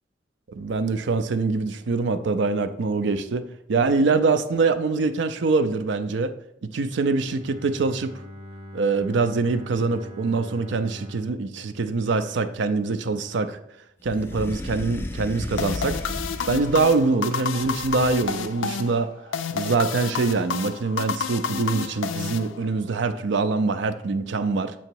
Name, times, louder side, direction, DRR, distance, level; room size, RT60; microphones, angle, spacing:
voice 1, 0.5-6.3 6.7-8.1 8.7-13.6 14.0-16.0 16.5-19.1 19.5-24.7, right 3 dB, 65° right, 11 dB, 0.5 m, -24 dB
Bowed string instrument, 7.1-13.0, equal, 25° right, 0.7 m, -43 dB
sound 1, 14.0-17.1 17.6-18.5, left 1 dB, 10° left, 0.3 m, -35 dB
sound 2, 15.6-23.0, left 6 dB, 80° left, 0.4 m, -30 dB
7.7 x 2.9 x 4.5 m, 0.78 s
head